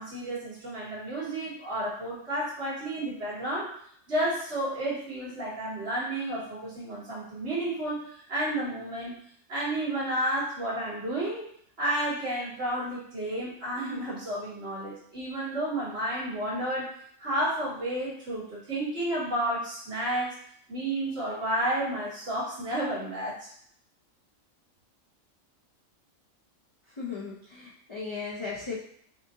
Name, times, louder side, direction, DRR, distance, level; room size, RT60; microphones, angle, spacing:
voice 1, 0.0-3.7 4.1-9.1 9.5-11.4 11.8-16.9 17.2-20.3 20.7-23.5, right 1 dB, 55° right, -8 dB, 2.0 m, -31 dB
voice 2, 27.0-28.8, left 5 dB, 40° left, -5 dB, 0.4 m, -36 dB
5.5 x 2.6 x 2.7 m, 0.65 s
omnidirectional pair, 1.3 m